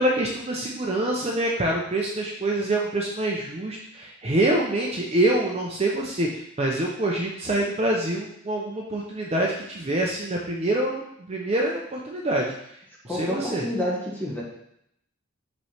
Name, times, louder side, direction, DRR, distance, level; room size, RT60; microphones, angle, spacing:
voice 1, 0.0-12.5 13.0-13.7, right 1 dB, 30° right, -1 dB, 0.6 m, -25 dB
voice 2, 13.1-14.4, equal, 10° left, -4 dB, 1.4 m, -28 dB
5.8 x 3.2 x 5.7 m, 0.74 s
head